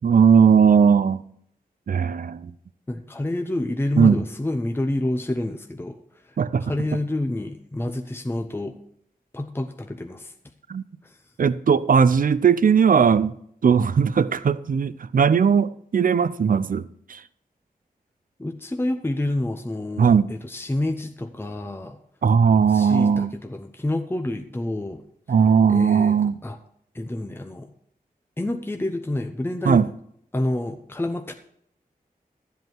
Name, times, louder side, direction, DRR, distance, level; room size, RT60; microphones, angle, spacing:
voice 1, 0.0-1.3 1.9-2.5 4.0-4.2 6.4-6.7 10.7-10.8 11.4-13.3 13.6-17.2 20.0-20.3 22.2-23.3 25.3-26.3 29.6-29.9, right 6 dB, 65° right, 0.6 m, -18 dB
voice 2, 2.9-6.0 6.3-8.7 9.3-10.3 11.0-11.2 18.4-22.0 22.7-25.0 25.7-26.2 26.4-26.6 26.9-27.7 28.4-29.8 30.3-31.3, left 1 dB, 15° left, 0.8 m, -28 dB
12.5 x 8.1 x 4.6 m
wide cardioid pair, 90°, 16 cm